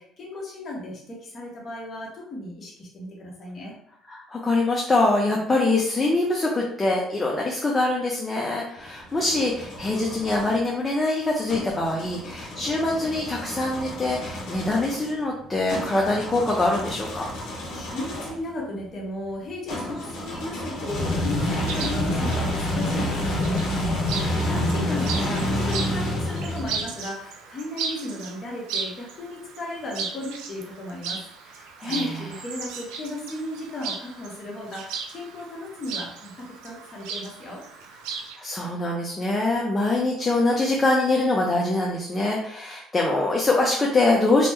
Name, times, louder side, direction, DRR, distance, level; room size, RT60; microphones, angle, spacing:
voice 1, 0.0-3.7 17.4-37.6, left 1 dB, 35° left, -3 dB, 1.0 m, -35 dB
voice 2, 4.1-17.3 24.5-24.9 31.8-32.0 38.4-44.5, left 2 dB, 20° left, -2 dB, 0.5 m, -24 dB
sound 1, 8.8-10.6 11.5-18.5 19.7-27.0, left 1 dB, 70° left, 0.7 m, -29 dB
Chirp tweet, 21.3-38.4, right 5 dB, 90° right, 0.4 m, -37 dB
3.0 x 2.0 x 3.4 m, 0.71 s
cardioid pair, 120°, 0 cm